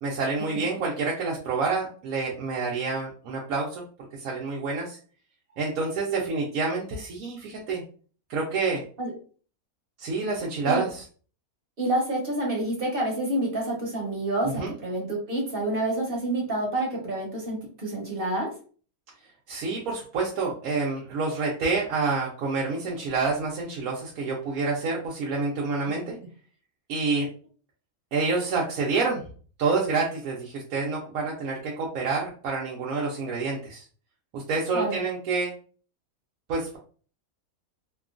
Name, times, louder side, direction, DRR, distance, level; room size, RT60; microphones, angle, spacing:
voice 1, 0.0-3.8 4.1-5.0 5.6-7.8 8.3-8.8 10.0-11.0 14.4-14.7 19.5-26.2 26.9-27.3 28.1-29.2 29.6-33.8 34.3-35.5 36.5-36.8, right 4 dB, 80° right, -3 dB, 1.1 m, -28 dB
voice 2, 11.8-18.5 34.7-35.0, right 1 dB, 45° right, -2 dB, 1.0 m, -28 dB
2.9 x 2.3 x 2.4 m, 0.41 s
omnidirectional pair, 1.5 m